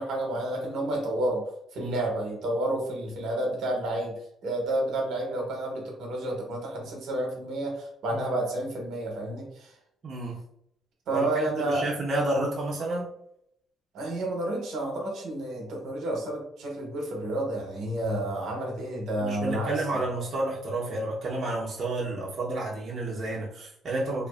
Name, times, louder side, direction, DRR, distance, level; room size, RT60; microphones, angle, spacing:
voice 1, 0.0-1.4 1.7-4.2 4.4-9.7 11.1-11.9 13.9-19.7, right 1 dB, 75° right, 0 dB, 0.8 m, -30 dB
voice 2, 10.0-10.4 11.1-13.1 19.2-24.3, right 2 dB, 50° right, -5 dB, 0.7 m, -30 dB
2.5 x 2.4 x 2.3 m, 0.75 s
cardioid pair, 90°, 0 cm